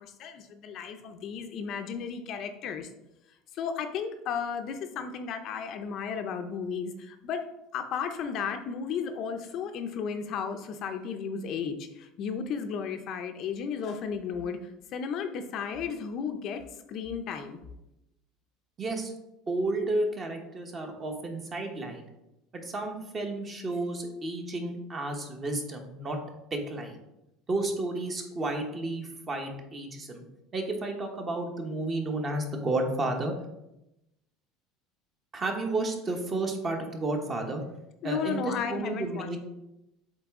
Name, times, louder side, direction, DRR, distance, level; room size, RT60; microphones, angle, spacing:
voice 1, 0.0-2.9 3.5-7.4 7.7-16.6 16.9-17.6 38.0-39.3, left 6 dB, 45° left, 6 dB, 0.5 m, -34 dB
voice 2, 18.8-19.1 19.5-22.0 22.5-26.2 26.5-27.0 27.5-30.2 30.5-33.3 35.3-37.6 38.0-39.4, right 2 dB, 25° right, 4 dB, 0.9 m, -32 dB
7.7 x 3.9 x 3.6 m, 0.90 s
cardioid pair, 155°, 0 cm